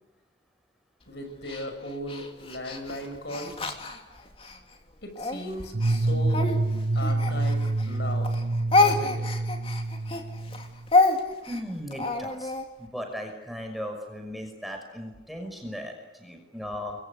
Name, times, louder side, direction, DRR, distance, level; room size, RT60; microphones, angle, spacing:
voice 1, 1.1-3.6 5.0-6.4 6.9-7.6 7.9-8.4 8.8-9.3, left 1 dB, 60° left, 7 dB, 6.1 m, -37 dB
Speech, 1.5-4.6 5.1-8.0 8.2-12.6, left 3 dB, 30° left, 2.8 m, -27 dB
sound 1, 5.7-10.9, right 2 dB, 65° right, 1.0 m, -27 dB
voice 2, 11.5-12.5 12.8-17.0, equal, ahead, 3 dB, 5.9 m, -37 dB
29.5 x 23.0 x 8.4 m, 1.0 s
head